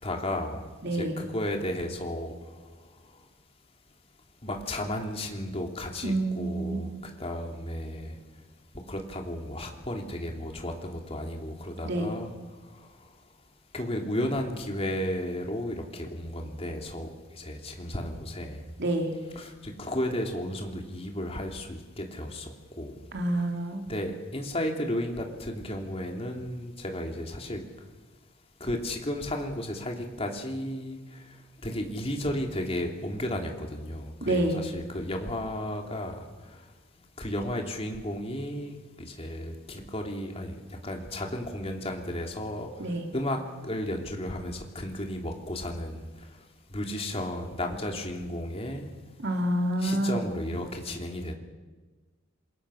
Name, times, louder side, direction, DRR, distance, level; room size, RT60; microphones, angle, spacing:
voice 1, 0.0-0.6 0.9-2.3 4.4-6.9 7.2-8.1 8.9-12.3 13.7-17.1 17.3-18.6 19.3-19.5 19.8-22.5 22.8-23.0 23.3-23.4 23.9-27.6 28.6-31.0 31.6-36.1 37.2-40.5 40.8-42.7 43.1-43.4 43.6-46.0 46.7-48.9 49.8-51.3, left 1 dB, 30° left, 2 dB, 3.1 m, -33 dB
voice 2, 0.8-1.2 6.0-6.8 11.8-12.1 18.8-19.1 23.1-23.9 34.2-34.6 42.8-43.1 49.2-50.3, right 1 dB, 60° right, 3 dB, 3.2 m, -28 dB
26.5 x 22.0 x 6.5 m, 1.3 s
head